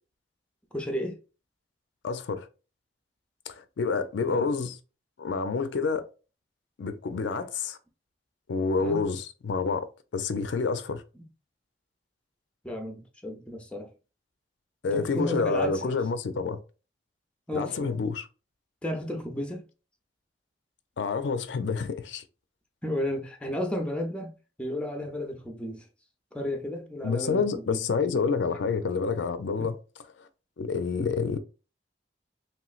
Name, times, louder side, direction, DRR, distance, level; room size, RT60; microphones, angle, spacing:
voice 1, 0.7-1.2 4.3-4.5 8.8-9.0 12.6-13.9 14.9-16.0 17.5-18.0 18.8-19.6 22.8-25.9 26.3-27.8 29.6-29.7, left 1 dB, 5° left, 0.5 m, -33 dB
voice 2, 2.0-2.5 3.5-4.8 5.2-6.1 6.8-7.8 8.5-11.0 14.8-16.6 17.5-18.3 21.0-22.2 27.0-29.8 30.2-30.3 30.6-31.4, left 4 dB, 85° left, 0.4 m, -28 dB
3.0 x 3.0 x 2.3 m
head